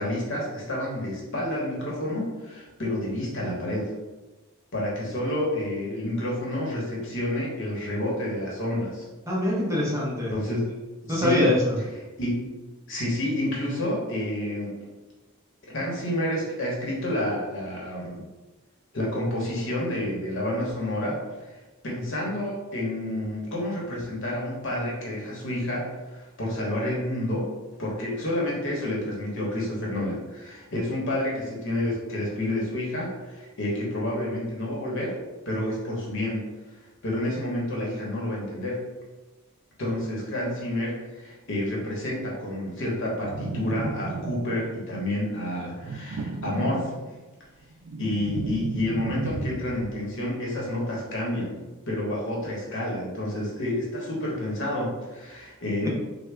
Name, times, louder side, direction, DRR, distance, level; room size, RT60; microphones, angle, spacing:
voice 1, 0.0-3.9 4.7-9.1 10.3-10.7 11.0-11.5 12.2-12.5 12.9-14.7 15.7-18.3 18.9-21.5 21.8-27.5 27.8-35.2 35.5-36.4 37.0-38.8 39.8-46.9 48.0-51.5 51.9-55.9, left 1 dB, 65° left, -3 dB, 1.0 m, -29 dB
voice 2, 9.3-10.3 11.1-11.8 55.8-55.9, left 1 dB, 15° right, -5 dB, 0.7 m, -23 dB
sound 1, 43.2-44.8 45.8-47.2 47.6-50.0, right 3 dB, 80° right, 0.4 m, -34 dB
3.4 x 2.2 x 3.2 m, 1.2 s
head